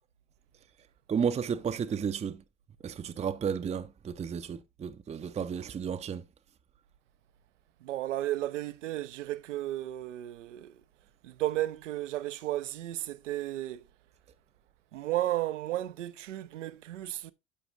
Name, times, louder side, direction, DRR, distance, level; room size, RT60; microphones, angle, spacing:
voice 1, 1.1-2.4 2.8-6.2, right 7 dB, 20° right, 0.5 m, -32 dB
voice 2, 7.8-10.8 11.2-13.8 14.9-17.3, right 14 dB, 80° right, 0.6 m, -33 dB
13.5 x 5.0 x 2.5 m
figure-of-eight pair, 60°, 36 cm